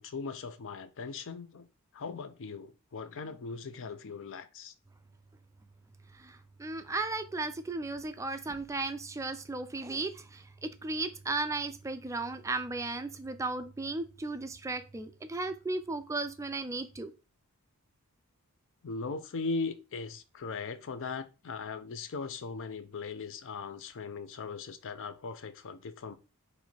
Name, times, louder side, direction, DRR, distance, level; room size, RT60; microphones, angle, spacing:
voice 1, 0.0-1.7 1.9-4.7 18.8-26.1, left 4 dB, 60° left, 0.5 m, -39 dB
voice 2, 6.1-17.1, right 3 dB, 15° right, 0.3 m, -35 dB
4.4 x 2.7 x 4.3 m
head